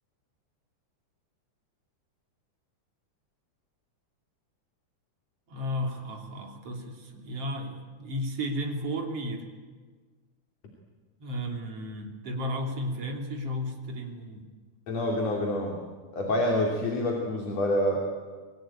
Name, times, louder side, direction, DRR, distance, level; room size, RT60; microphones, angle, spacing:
voice 1, 5.5-9.5 11.2-14.4, equal, 50° right, 2 dB, 4.1 m, -33 dB
voice 2, 14.9-15.8 16.1-18.0, left 1 dB, 55° left, 0 dB, 4.0 m, -27 dB
27.5 x 22.0 x 9.0 m, 1.5 s
omnidirectional pair, 3.7 m